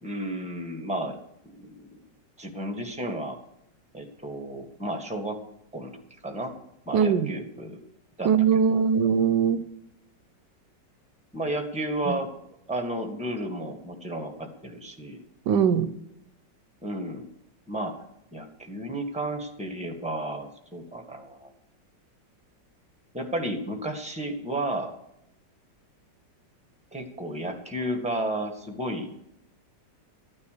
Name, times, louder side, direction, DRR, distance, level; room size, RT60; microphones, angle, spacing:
voice 1, 0.0-1.2 1.6-2.0 2.4-3.4 3.9-5.4 5.7-5.9 6.2-6.5 6.8-7.8 8.2-8.8 11.3-12.3 12.7-15.2 16.8-17.3 17.7-18.0 18.3-21.5 23.1-24.9 26.9-29.1, right 1 dB, 5° right, 4 dB, 1.7 m, -32 dB
voice 2, 6.9-7.3 8.2-9.6 12.1-12.2 15.5-15.9, right 7 dB, 75° right, 14 dB, 1.3 m, -21 dB
13.0 x 9.7 x 6.8 m, 0.80 s
omnidirectional pair, 2.0 m